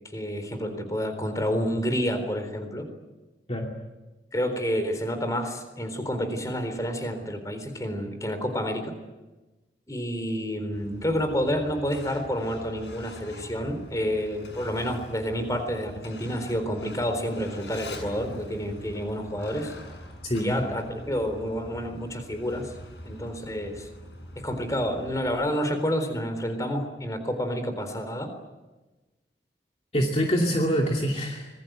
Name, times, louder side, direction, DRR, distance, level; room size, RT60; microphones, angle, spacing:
voice 1, 0.1-2.9 4.3-8.9 9.9-19.7 20.4-22.7 23.0-23.9 24.4-28.3, equal, 20° left, 8 dB, 3.9 m, -29 dB
Truck, 10.7-25.3, left 1 dB, 90° left, 7.7 m, -44 dB
voice 2, 20.2-20.6 29.9-31.5, equal, 35° left, 0 dB, 2.6 m, -25 dB
25.5 x 21.5 x 9.3 m, 1.1 s
head